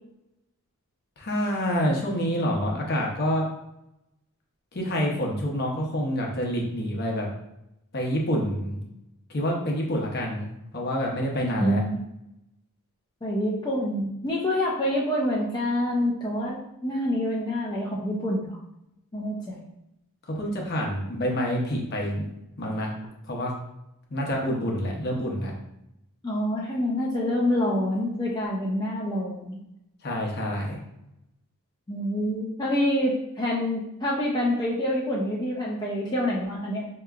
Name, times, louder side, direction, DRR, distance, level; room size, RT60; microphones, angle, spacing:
voice 1, 1.2-3.4 4.7-7.3 7.9-8.8 9.3-11.8 20.3-22.3 22.6-22.9 23.3-23.5 24.1-25.5 30.0-30.8, equal, 45° left, -1 dB, 0.8 m, -27 dB
voice 2, 11.6-12.0 13.2-18.6 19.1-19.6 26.2-29.6 31.9-36.9, left 1 dB, 20° left, -6 dB, 0.5 m, -27 dB
4.6 x 2.9 x 2.4 m, 0.86 s
head